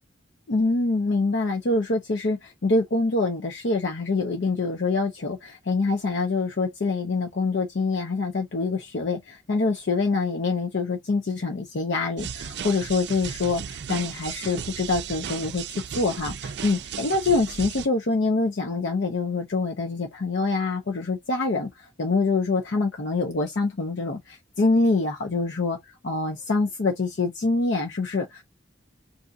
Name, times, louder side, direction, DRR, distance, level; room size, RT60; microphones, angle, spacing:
voice 1, 0.5-28.5, left 3 dB, 70° left, 0.6 m, -25 dB
sound 1, 12.2-17.9, right 8 dB, 60° right, 0.4 m, -35 dB
2.6 x 2.5 x 3.8 m
head